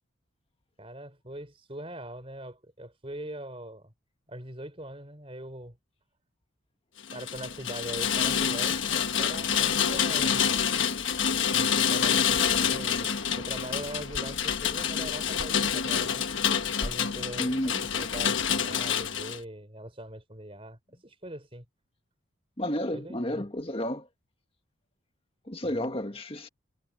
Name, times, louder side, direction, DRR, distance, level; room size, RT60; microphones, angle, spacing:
voice 1, 0.8-3.9 4.3-5.8 7.1-10.4 11.5-16.3 16.8-21.6 22.9-23.5 25.6-26.0, right 1 dB, 25° right, 4.5 m, -42 dB
Rain, 7.0-19.4, left 7 dB, 65° left, 1.4 m, -27 dB
voice 2, 17.4-17.9 22.6-24.1 25.5-26.5, left 1 dB, 25° left, 1.8 m, -31 dB
head